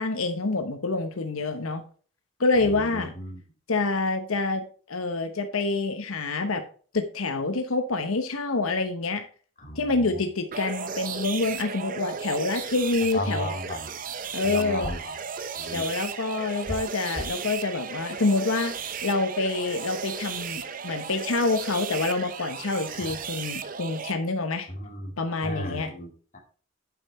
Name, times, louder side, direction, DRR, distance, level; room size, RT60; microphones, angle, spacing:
voice 1, 0.0-1.8 2.4-3.1 3.7-4.6 4.9-6.6 6.9-9.2 9.8-13.5 14.3-14.9 15.7-24.7 25.2-25.9, left 3 dB, 85° left, 7 dB, 0.9 m, -27 dB
voice 2, 2.6-3.4 9.6-10.2 13.1-13.9 14.4-15.2 15.6-15.9 22.9-23.2 24.7-25.2 25.4-26.4, left 1 dB, 35° left, 1 dB, 2.3 m, -35 dB
sound 1, 10.5-24.1, right 6 dB, 40° right, 0.6 m, -35 dB
sound 2, 14.8-15.1 16.6-17.4, equal, 10° left, 1.4 m, -34 dB
8.8 x 5.5 x 4.1 m, 0.41 s
head